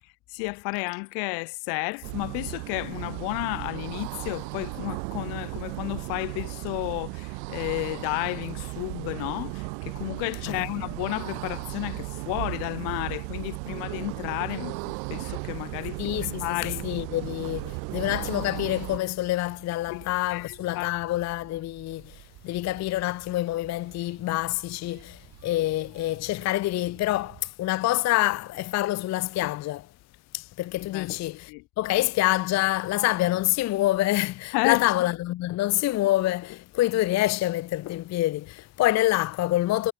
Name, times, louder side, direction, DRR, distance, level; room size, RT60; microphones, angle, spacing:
voice 1, 0.3-16.9 19.9-20.9 30.9-31.1 31.5-31.6 34.5-34.8, left 39 dB, 85° left, 1.8 m, -32 dB
sound 1, 2.0-19.0, right 40 dB or more, 85° right, 1.6 m, -35 dB
voice 2, 16.0-29.9 30.3-39.9, left 16 dB, 45° left, 0.4 m, -26 dB
sound 2, 17.7-27.5, right 15 dB, 70° right, 5.3 m, -52 dB
supercardioid pair, 65°, 39 cm